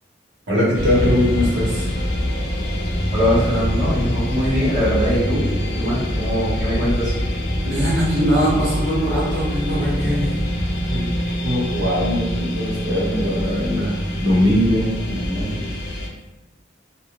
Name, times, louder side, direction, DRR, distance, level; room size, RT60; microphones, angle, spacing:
voice 1, 0.5-2.0 7.6-10.3 10.9-11.1 11.4-15.7, equal, 65° right, -6 dB, 1.2 m, -21 dB
sound 1, 0.7-16.1, equal, 65° left, 0.7 m, -24 dB
voice 2, 3.1-5.4 5.7-7.1, equal, 45° right, -13 dB, 1.2 m, -22 dB
sound 2, 9.5-12.5, left 1 dB, 30° left, 0.3 m, -38 dB
3.1 x 2.5 x 2.5 m, 1.0 s
head